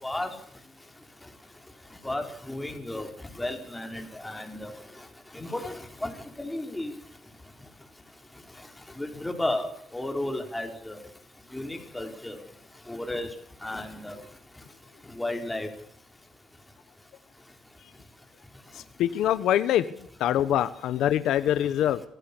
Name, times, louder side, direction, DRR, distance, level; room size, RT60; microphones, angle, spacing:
voice 1, 2.0-3.1 3.4-4.7 5.3-5.7 6.0-6.1 6.4-6.9 9.0-11.0 11.5-12.3 12.9-13.3 13.6-14.1 15.2-15.7, left 1 dB, 10° left, 4 dB, 4.7 m, -33 dB
voice 2, 18.7-22.0, left 11 dB, 85° left, 13 dB, 1.0 m, -25 dB
27.0 x 15.0 x 7.1 m, 0.71 s
cardioid pair, 90°, 0 cm